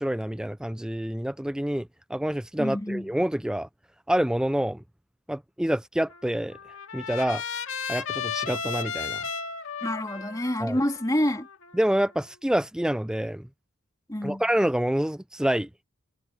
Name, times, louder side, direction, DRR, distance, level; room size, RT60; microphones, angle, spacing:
voice 1, 0.0-3.7 4.1-4.8 5.3-6.6 6.9-7.4 7.9-9.2 10.6-10.8 11.7-13.5 14.2-15.8, right 1 dB, 5° right, 0.4 m, -27 dB
voice 2, 2.6-3.1 9.8-11.5 14.1-14.4, left 1 dB, 15° left, 2.4 m, -27 dB
Trumpet, 6.1-12.3, left 6 dB, 65° left, 2.2 m, -35 dB
head